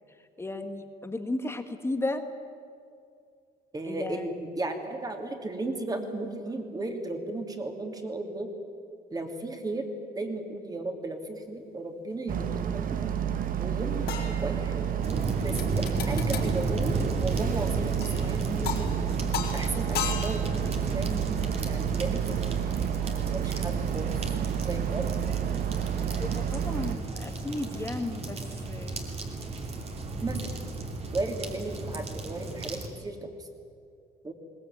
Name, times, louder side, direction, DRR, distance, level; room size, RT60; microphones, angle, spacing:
voice 1, 0.4-2.2 3.9-4.3 26.2-28.4 28.7-29.0, left 2 dB, 15° left, 7 dB, 1.7 m, -34 dB
voice 2, 3.7-8.5 9.1-9.9 10.1-12.9 13.6-14.9 15.4-19.1 19.5-21.3 21.6-24.1 24.7-25.2 30.2-30.6 31.1-33.5 34.2-34.3, right 2 dB, 20° right, 5 dB, 3.0 m, -35 dB
Boat Water vehicle, 12.3-27.0, right 9 dB, 55° right, 1.3 m, -30 dB
sound 1, 14.1-15.0 15.6-16.6 18.0-18.3 18.6-19.0 19.3-20.6 23.2-23.3, left 8 dB, 75° left, 4.7 m, -35 dB
sound 2, 15.0-32.9, right 2 dB, 35° right, 3.0 m, -34 dB
21.5 x 19.0 x 9.3 m, 2.4 s
cardioid pair, 110°, 17 cm